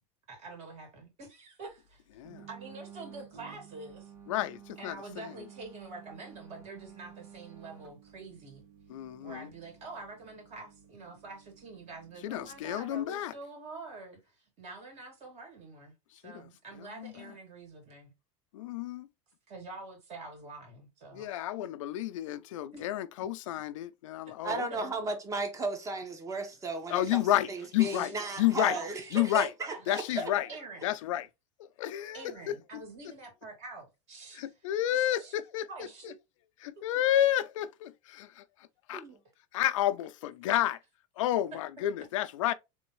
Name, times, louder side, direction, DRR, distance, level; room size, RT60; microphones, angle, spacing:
voice 1, 0.3-2.0 2.5-4.1 4.8-8.6 9.2-18.1 19.5-21.3 22.7-22.9 27.8-28.1 28.7-29.1 29.7-30.1 30.5-30.9 32.1-34.5 34.9-35.3 35.7-36.1 40.5-40.6, right 3 dB, 45° right, 2.8 m, -46 dB
sound 1, 2.2-13.1, right 9 dB, 85° right, 2.2 m, -53 dB
voice 2, 4.3-5.3 8.9-9.5 12.2-13.3 16.2-16.5 16.8-17.1 18.5-19.1 21.1-24.9 26.9-28.1 28.4-28.8 29.1-29.5 29.9-30.5 30.8-31.3 31.6-32.8 34.3-35.7 36.0-36.1 36.6-38.4 38.9-39.0 39.5-40.8 41.2-42.5, left 13 dB, 90° left, 0.5 m, -30 dB
voice 3, 24.4-30.3 38.9-39.2, right 3 dB, 20° right, 1.2 m, -35 dB
3.9 x 3.5 x 3.1 m
supercardioid pair, 135°, 16 cm